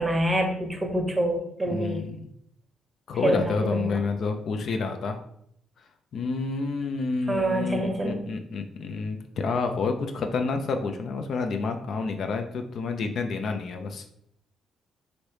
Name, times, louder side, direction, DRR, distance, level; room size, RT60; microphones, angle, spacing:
voice 1, 0.0-2.0 3.2-4.0 7.3-8.2, right 1 dB, 15° right, 3 dB, 0.7 m, -26 dB
voice 2, 1.7-2.3 3.1-5.2 6.1-14.1, left 4 dB, 60° left, 5 dB, 0.3 m, -29 dB
3.0 x 2.6 x 3.2 m, 0.72 s
cardioid pair, 90°, 0 cm